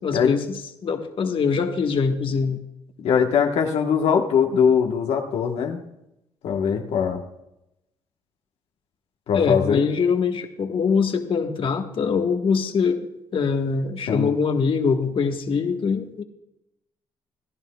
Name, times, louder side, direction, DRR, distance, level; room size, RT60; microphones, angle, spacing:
voice 1, 0.0-2.6 9.3-13.0 13.3-16.2, left 5 dB, 55° left, 5 dB, 1.3 m, -23 dB
voice 2, 3.0-5.8 6.4-7.2 9.3-9.8 14.1-14.3, left 7 dB, 75° left, 2 dB, 1.3 m, -21 dB
26.5 x 11.0 x 2.3 m, 0.86 s
supercardioid pair, 65°, 11 cm